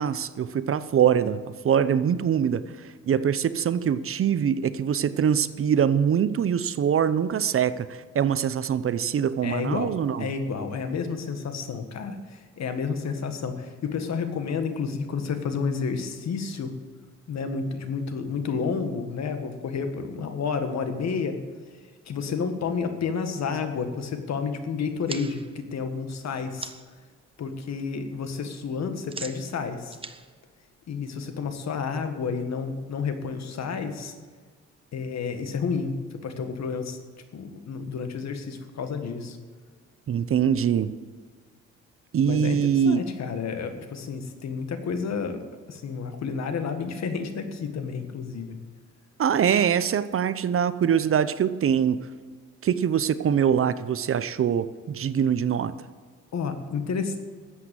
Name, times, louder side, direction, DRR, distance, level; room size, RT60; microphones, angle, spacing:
voice 1, 0.0-1.4 1.6-2.6 3.0-7.9 8.1-10.3 40.1-41.0 42.1-43.0 49.2-52.0 52.6-55.7, right 8 dB, 45° right, 14 dB, 0.7 m, -23 dB
voice 2, 9.4-16.7 17.3-21.4 22.0-26.7 27.4-30.0 30.9-34.1 34.9-36.0 36.2-37.0 37.3-39.4 42.2-48.5 56.3-57.2, left 5 dB, 60° left, 8 dB, 1.7 m, -30 dB
sound 1, 25.1-27.0 27.4-27.8 28.1-31.4, right 3 dB, 20° right, 0.8 m, -42 dB
13.0 x 8.2 x 7.6 m, 1.5 s
cardioid pair, 90°, 30 cm